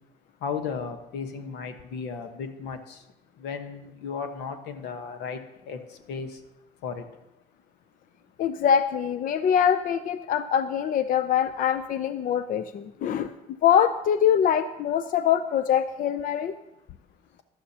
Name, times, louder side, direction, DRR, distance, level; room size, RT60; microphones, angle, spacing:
voice 1, 0.4-3.0 3.4-5.4 5.6-6.4 6.8-7.0, left 6 dB, 85° left, 7 dB, 1.2 m, -35 dB
voice 2, 8.4-13.3 13.6-16.5, left 8 dB, 55° left, 11 dB, 0.5 m, -23 dB
15.5 x 11.5 x 2.8 m, 0.90 s
cardioid pair, 110°, 17 cm